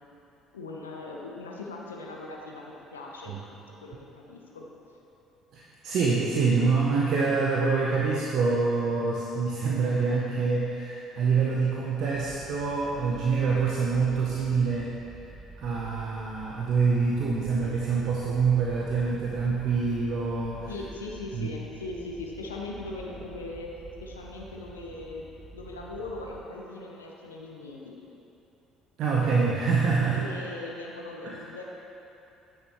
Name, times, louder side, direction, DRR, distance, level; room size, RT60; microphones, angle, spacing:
voice 1, 0.5-3.3 3.8-4.7 20.7-25.3 25.5-28.0 29.9-31.6, left 2 dB, 90° left, -2 dB, 0.7 m, -40 dB
voice 2, 5.5-14.9 15.6-20.7 21.3-21.5 29.0-30.3 31.2-31.4, right 4 dB, 60° right, -3 dB, 0.7 m, -26 dB
sound 1, 12.1-26.4, right 3 dB, 30° right, 1.0 m, -47 dB
9.7 x 6.6 x 3.0 m, 2.9 s
hypercardioid pair, 55°, 0 cm